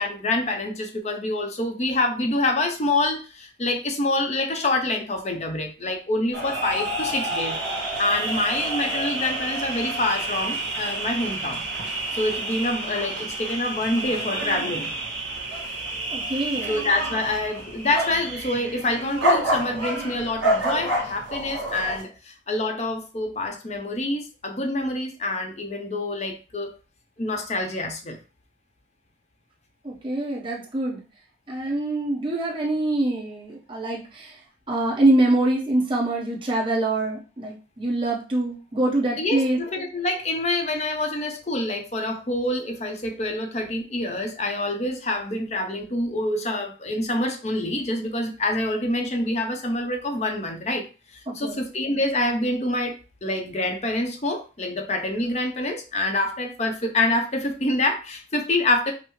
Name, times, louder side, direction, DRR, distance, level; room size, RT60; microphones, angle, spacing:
voice 1, 0.0-7.6 8.0-11.7 12.1-14.9 16.7-26.8 27.2-28.2 39.2-50.9 51.1-53.0 53.2-58.9, left 2 dB, 35° left, 4 dB, 0.7 m, -26 dB
sound 1, 6.3-22.0, right 1 dB, 70° right, 1.5 m, -28 dB
voice 2, 16.1-16.8 29.8-31.0 31.5-34.4 34.7-39.6 51.3-51.6, right 2 dB, 25° right, -4 dB, 1.0 m, -24 dB
5.4 x 2.0 x 3.1 m, 0.33 s
head